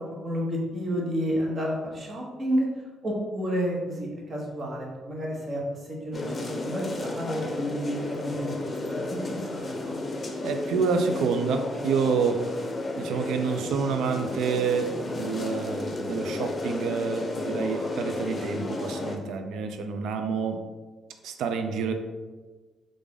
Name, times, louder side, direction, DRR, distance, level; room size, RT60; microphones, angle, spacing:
voice 1, 0.2-2.7 3.0-8.5 8.8-10.0, equal, 40° right, -2 dB, 1.0 m, -30 dB
sound 1, 6.1-19.2, left 2 dB, 35° left, 0.6 m, -33 dB
voice 2, 10.4-12.5 13.0-20.6 21.2-21.9, right 5 dB, 80° right, 6 dB, 0.3 m, -28 dB
3.3 x 2.5 x 3.6 m, 1.3 s
cardioid pair, 90°, 0 cm